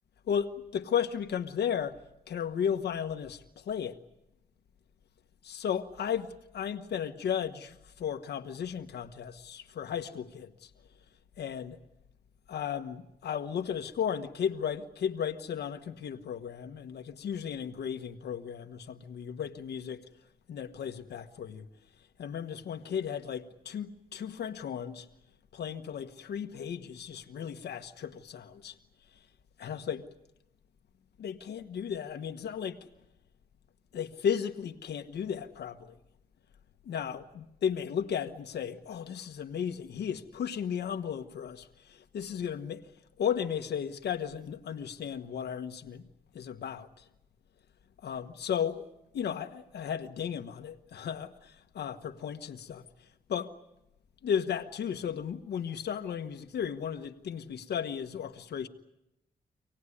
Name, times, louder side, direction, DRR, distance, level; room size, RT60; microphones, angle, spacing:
voice 1, 0.3-2.0 2.3-4.0 5.4-10.7 11.4-11.8 12.5-20.0 20.5-21.7 22.2-25.1 25.5-28.8 29.6-30.1 31.2-32.9 33.9-36.0 36.8-42.9 43.2-46.1 46.3-47.1 48.0-48.9 49.1-53.5 54.2-58.7, left 8 dB, 90° left, 1.2 m, -35 dB
26.5 x 18.0 x 9.9 m
wide cardioid pair, 110°, 17 cm